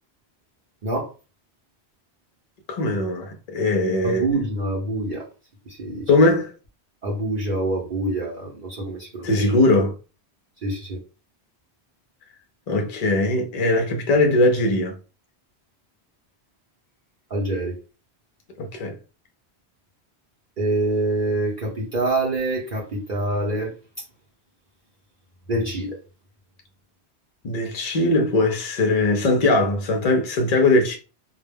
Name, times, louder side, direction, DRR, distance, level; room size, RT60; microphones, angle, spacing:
voice 1, 2.7-4.3 6.1-6.5 9.2-10.0 12.7-15.0 18.6-18.9 27.4-31.0, left 2 dB, 55° left, 0.5 m, -20 dB
voice 2, 4.0-5.2 5.8-6.1 7.0-9.3 10.6-11.0 17.3-17.8 20.6-23.7 25.5-25.9, right 2 dB, 55° right, 0.7 m, -25 dB
2.1 x 2.1 x 3.3 m
omnidirectional pair, 1.1 m